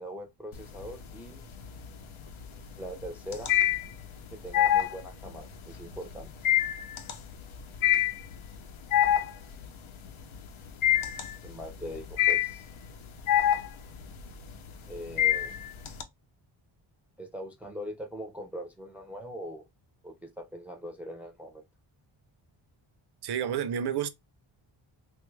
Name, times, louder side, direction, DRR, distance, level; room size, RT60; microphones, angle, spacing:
voice 1, 0.0-1.4 2.8-3.5 4.3-6.3 11.4-12.7 14.9-15.5 17.2-19.6 20.0-21.6, equal, 5° right, 0.5 m, -41 dB
sound 1, 0.5-1.2 1.5-16.0, left 11 dB, 75° left, 0.7 m, -26 dB
voice 2, 23.2-24.1, right 8 dB, 55° right, 0.5 m, -30 dB
3.3 x 2.3 x 3.1 m
wide cardioid pair, 160°, 49 cm